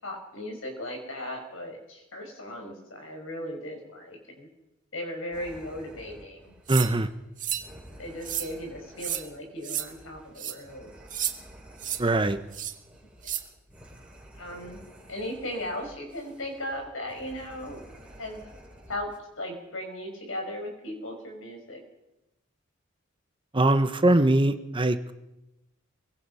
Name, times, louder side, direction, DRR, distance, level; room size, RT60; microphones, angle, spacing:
voice 1, 0.0-4.5 4.9-6.5 8.0-10.9 14.3-14.8 15.1-17.9 18.2-18.4 18.9-21.8, left 1 dB, 70° left, 3 dB, 6.1 m, -37 dB
sound 1, 5.3-19.2, right 1 dB, 5° right, 6.0 m, -51 dB
voice 2, 6.7-7.1 12.0-12.4 23.5-25.1, right 2 dB, 25° right, 10 dB, 1.0 m, -22 dB
sound 2, 6.7-6.9 7.4-7.7 8.2-8.5 9.0-9.2 9.6-9.9 10.4-10.5 11.1-11.3 11.8-12.0 12.5-12.7 13.2-13.4, right 10 dB, 40° right, 1.8 m, -31 dB
24.0 x 22.0 x 5.7 m, 0.96 s
head